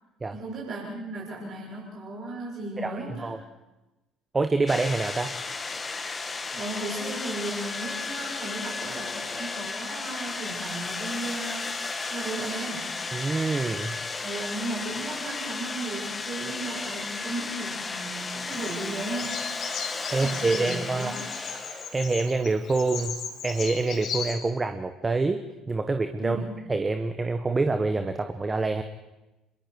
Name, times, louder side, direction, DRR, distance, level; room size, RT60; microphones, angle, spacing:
voice 1, 0.3-3.3 6.5-11.8 12.1-12.9 14.2-19.4 20.1-21.3 26.2-26.5, right 2 dB, 50° right, -4 dB, 6.7 m, -35 dB
voice 2, 2.8-3.4 4.3-5.3 13.1-13.9 20.1-21.1 21.9-23.1 23.4-26.4 26.7-28.8, right 3 dB, 25° right, 8 dB, 1.3 m, -26 dB
sound 1, 4.7-22.2, left 4 dB, 25° left, 1.8 m, -34 dB
Bird vocalization bird call bird song, 18.5-24.3, left 7 dB, 55° left, 4.8 m, -37 dB
27.5 x 22.5 x 4.8 m, 1.0 s
figure-of-eight pair, 55°, 0 cm